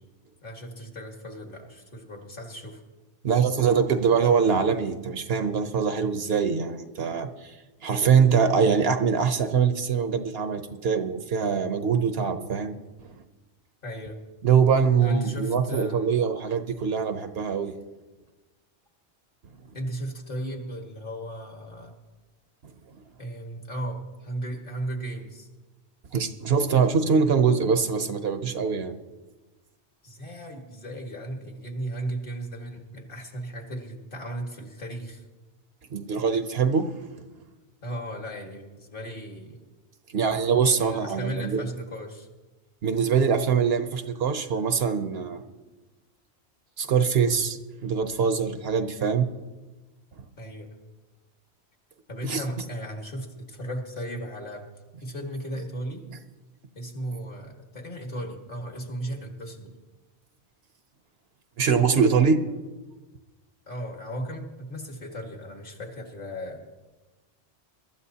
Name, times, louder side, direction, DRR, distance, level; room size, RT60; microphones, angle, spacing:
voice 1, 0.4-2.8 13.8-14.2 15.0-16.1 19.7-21.9 23.2-25.5 30.0-35.2 37.8-39.6 40.7-42.3 50.4-50.8 52.1-54.7 55.0-56.0 56.7-59.8 63.7-66.6, right 1 dB, 50° left, 2 dB, 2.0 m, -35 dB
voice 2, 3.2-7.5 7.8-13.2 14.4-17.7 26.1-28.9 35.9-36.9 40.1-41.6 42.8-45.4 46.8-49.3 50.2-50.3 52.2-52.4 56.1-56.2 61.6-62.4, right 6 dB, 65° right, 8 dB, 1.0 m, -23 dB
22.5 x 13.0 x 2.8 m, 1.2 s
omnidirectional pair, 1.1 m